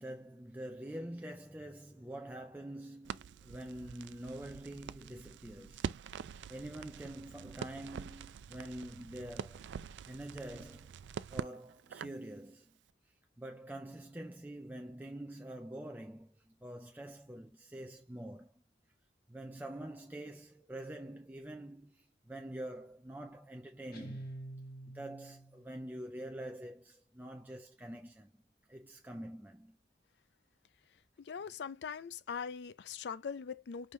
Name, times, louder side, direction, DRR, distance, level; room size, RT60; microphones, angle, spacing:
voice 1, 0.0-5.9 6.5-9.7 10.0-11.0 11.3-12.8 13.4-18.5 19.3-24.3 24.9-28.3 28.7-29.8, right 1 dB, 10° right, 0.5 m, -46 dB
Crackle, 3.0-12.3, right 7 dB, 85° right, 0.3 m, -45 dB
Guitar, 23.9-25.6, right 1 dB, 55° left, 1.4 m, -46 dB
voice 2, 31.2-33.9, left 6 dB, 75° left, 0.4 m, -41 dB
5.0 x 2.7 x 3.1 m
head